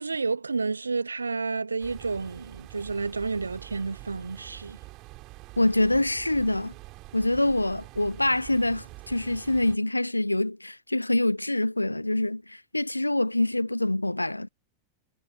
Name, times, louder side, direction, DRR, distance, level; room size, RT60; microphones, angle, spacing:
voice 1, 0.0-4.8, right 4 dB, 80° right, 0.6 m, -30 dB
sound 1, 1.8-9.8, right 21 dB, 40° right, 4.2 m, -46 dB
voice 2, 5.6-6.7 7.1-14.5, left 1 dB, 85° left, 0.4 m, -25 dB
figure-of-eight pair, 90°, 0 cm